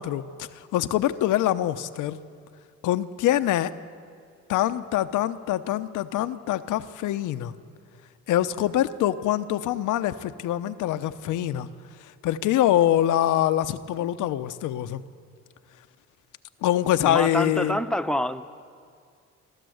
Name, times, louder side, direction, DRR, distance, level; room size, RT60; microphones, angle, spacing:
voice 1, 0.0-2.2 2.8-3.7 4.5-7.5 8.3-11.7 12.0-15.0 16.6-17.8, left 12 dB, 85° left, 11 dB, 0.8 m, -24 dB
voice 2, 17.1-18.5, equal, ahead, 9 dB, 0.9 m, -26 dB
26.5 x 12.5 x 7.9 m, 2.2 s
cardioid pair, 90°, 30 cm